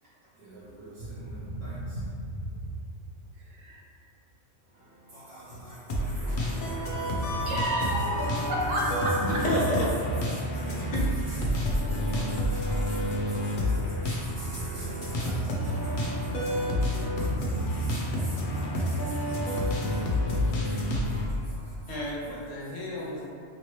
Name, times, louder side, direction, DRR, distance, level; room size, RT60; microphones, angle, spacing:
voice 1, 0.4-1.8 5.1-7.5 8.2-8.5 10.3-10.8 11.5-20.0, equal, 65° right, -14 dB, 1.5 m, -44 dB
voice 2, 1.2-2.2 3.6-3.8 7.4-8.1 8.7-9.4, right 1 dB, 85° right, -4 dB, 1.1 m, -32 dB
sound 1, 5.9-21.3, equal, 60° left, 0.5 m, -29 dB
voice 3, 9.3-9.9 10.6-11.2 11.6-11.7 21.9-23.3, left 1 dB, 75° left, -5 dB, 1.0 m, -31 dB
2.9 x 2.8 x 3.0 m, 2.5 s
omnidirectional pair, 1.3 m